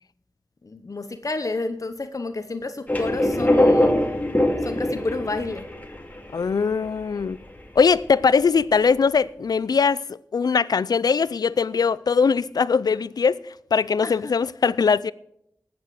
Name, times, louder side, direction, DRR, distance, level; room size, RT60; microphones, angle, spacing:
voice 1, 0.6-4.0 4.6-5.7 14.0-14.3, left 3 dB, 60° left, 1.0 m, -30 dB
sound 1, 2.9-7.9, left 1 dB, 25° left, 2.4 m, -22 dB
voice 2, 6.3-7.4 7.8-13.4 13.7-15.1, left 5 dB, 90° left, 0.4 m, -21 dB
18.5 x 8.1 x 4.8 m
wide cardioid pair, 50°, 7 cm